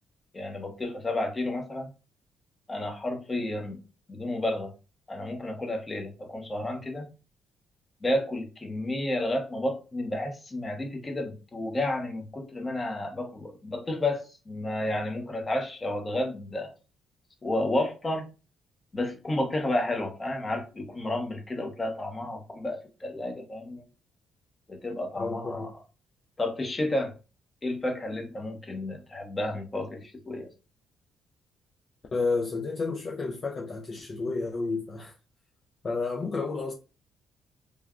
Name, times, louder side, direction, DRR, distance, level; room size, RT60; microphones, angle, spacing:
voice 1, 0.3-1.9 2.7-3.8 4.1-4.7 5.1-7.1 8.0-16.7 17.4-18.2 18.9-23.8 24.7-25.7 26.4-27.1 27.6-30.5, left 1 dB, 25° left, 0.8 m, -31 dB
voice 2, 25.2-25.7 32.1-35.1 35.8-36.7, left 3 dB, 40° left, 0.4 m, -31 dB
3.2 x 2.2 x 2.3 m
cardioid pair, 90°, 0 cm